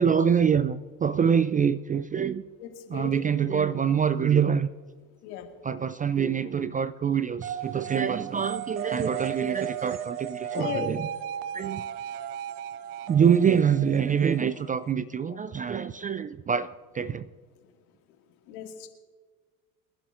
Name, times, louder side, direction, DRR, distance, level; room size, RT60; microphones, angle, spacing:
voice 1, 0.0-2.4 2.9-4.7 5.6-11.1 11.5-11.8 13.1-17.3, right 7 dB, 20° right, 15 dB, 0.3 m, -25 dB
voice 2, 2.6-3.3 5.2-5.5 10.5-11.0 15.3-15.4 18.5-18.9, left 9 dB, 75° left, 3 dB, 2.2 m, -36 dB
sound 1, 7.4-14.9, right 10 dB, 80° right, 0.9 m, -35 dB
25.0 x 11.0 x 2.5 m, 1.4 s
hypercardioid pair, 75°, 45 cm